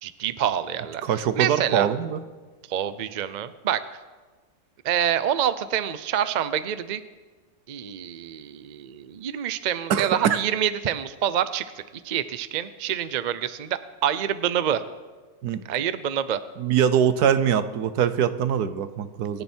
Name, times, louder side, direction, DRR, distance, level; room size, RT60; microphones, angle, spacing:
voice 1, 0.0-1.9 2.7-3.8 4.8-7.0 7.7-11.6 12.0-14.8 15.7-16.4 19.3-19.4, right 9 dB, 50° right, 13 dB, 0.5 m, -27 dB
voice 2, 1.0-2.2 9.9-10.4 15.4-15.6 16.6-19.4, right 8 dB, 85° right, 12 dB, 1.4 m, -23 dB
26.5 x 10.5 x 4.5 m, 1.3 s
omnidirectional pair, 1.6 m